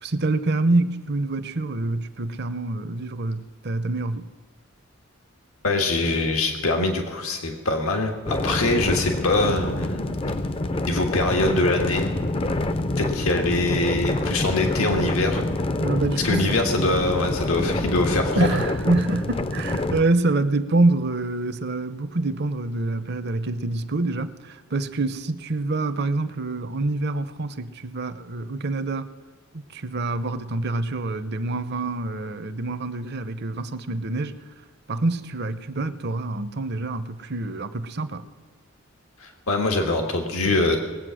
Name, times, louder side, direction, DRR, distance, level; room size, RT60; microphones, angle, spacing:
voice 1, 0.0-4.3 15.8-16.5 18.4-29.1 29.5-34.4 34.9-38.3, right 2 dB, 50° right, 0.7 m, -26 dB
voice 2, 5.6-10.0 10.9-12.2 13.0-15.5 16.2-18.6 39.2-40.8, left 2 dB, 90° left, 1.6 m, -23 dB
sound 1, 8.3-20.1, left 2 dB, 25° left, 0.5 m, -26 dB
20.0 x 8.4 x 6.3 m
head